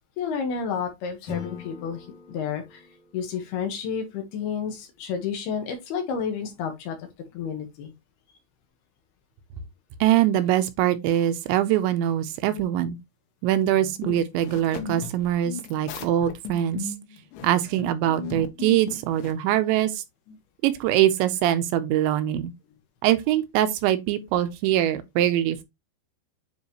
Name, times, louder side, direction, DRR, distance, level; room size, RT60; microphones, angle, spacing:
voice 1, 0.2-2.8 3.1-7.1 7.3-7.9 12.4-12.6, left 6 dB, 70° left, 3.1 m, -31 dB
Acoustic guitar / Strum, 1.3-4.4, left 7 dB, 45° left, 2.9 m, -42 dB
voice 2, 10.0-13.0 13.4-16.9 17.4-20.0 20.6-22.5 23.0-25.6, right 12 dB, 80° right, 3.0 m, -23 dB
sound 1, 13.6-19.3, left 6 dB, 85° left, 3.6 m, -37 dB
9.7 x 3.8 x 3.0 m
omnidirectional pair, 5.3 m